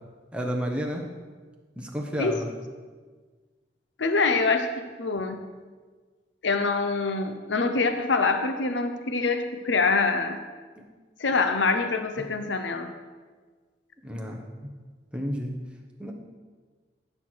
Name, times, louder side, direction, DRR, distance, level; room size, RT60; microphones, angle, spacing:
voice 1, 0.3-1.0 1.8-2.5 14.0-14.7 15.1-15.5 16.0-16.1, equal, 5° right, 0 dB, 1.1 m, -31 dB
voice 2, 4.0-5.4 6.4-10.4 11.2-12.9, left 4 dB, 80° left, 7 dB, 0.8 m, -25 dB
14.0 x 6.5 x 4.6 m, 1.4 s
head